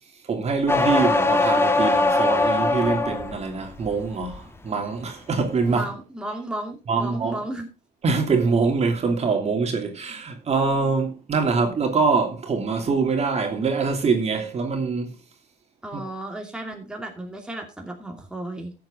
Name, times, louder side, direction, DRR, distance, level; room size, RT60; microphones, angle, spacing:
voice 1, 0.2-5.9 6.9-7.4 8.0-15.1 15.9-16.0, right 4 dB, 40° right, 2.8 m, -24 dB
sound 1, 0.7-3.4 3.8-4.4, left 2 dB, 15° left, 1.4 m, -21 dB
voice 2, 5.7-7.7 15.8-18.7, right 1 dB, 5° right, 2.5 m, -34 dB
13.5 x 8.0 x 3.8 m
cardioid pair, 110°, 17 cm